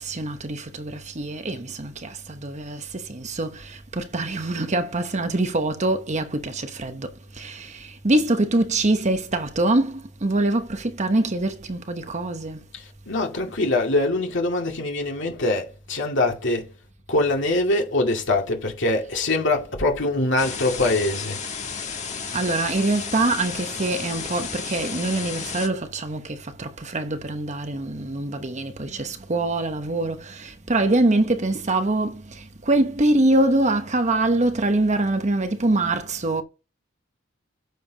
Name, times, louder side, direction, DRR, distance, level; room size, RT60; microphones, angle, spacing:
voice 1, 0.0-12.7 22.3-36.4, right 2 dB, 35° right, 1.0 m, -24 dB
voice 2, 12.7-16.7 17.1-21.4, left 2 dB, 65° left, 2.3 m, -23 dB
sound 1, 20.4-25.7, left 5 dB, 35° left, 1.4 m, -33 dB
9.2 x 7.0 x 2.9 m
head